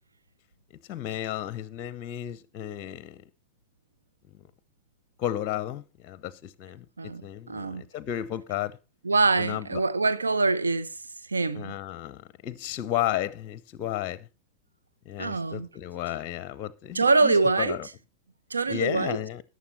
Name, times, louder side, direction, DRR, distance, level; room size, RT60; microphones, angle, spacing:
voice 1, 0.9-3.2 5.2-6.8 7.2-8.8 9.4-9.8 11.5-14.3 15.1-17.9 18.7-19.4, left 12 dB, 40° left, 0.6 m, -33 dB
voice 2, 7.0-7.8 9.0-10.9 11.3-11.7 15.2-15.7 16.9-17.8 18.5-19.2, right 3 dB, 75° right, 0.7 m, -24 dB
14.0 x 9.5 x 3.1 m
figure-of-eight pair, 90°, 0 cm